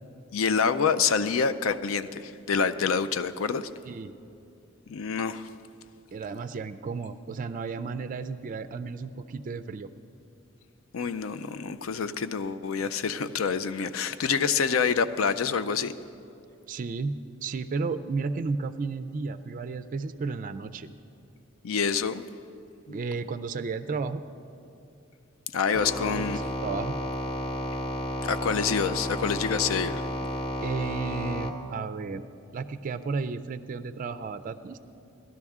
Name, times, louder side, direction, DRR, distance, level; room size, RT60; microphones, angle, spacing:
voice 1, 0.3-3.7 4.9-5.5 10.9-15.9 21.6-22.3 22.9-23.0 25.5-26.4 28.2-30.0, left 6 dB, 85° left, 13 dB, 0.5 m, -27 dB
voice 2, 6.1-9.9 16.7-20.9 22.9-24.2 26.2-27.0 30.6-32.2 32.5-34.8, right 4 dB, 40° right, 10 dB, 0.3 m, -33 dB
sound 1, 25.7-31.5, equal, 30° left, 0.8 m, -32 dB
17.0 x 12.0 x 3.6 m, 2.7 s
head